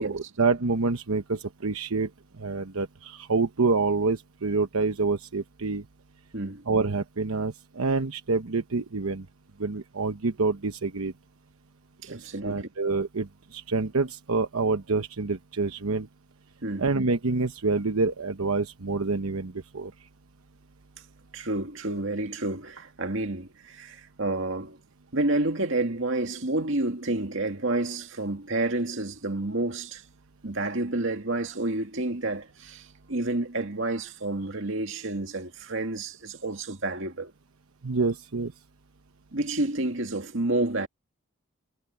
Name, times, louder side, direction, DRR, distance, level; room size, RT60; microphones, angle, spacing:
voice 1, 0.0-5.8 6.7-9.3 9.6-11.1 12.1-16.1 16.8-19.9 37.8-38.5, right 3 dB, 85° right, 1.0 m, -27 dB
voice 2, 6.3-6.6 12.0-12.7 16.6-16.9 21.3-24.8 25.1-30.0 30.4-37.3 39.3-40.9, right 2 dB, 60° right, 2.3 m, -29 dB
head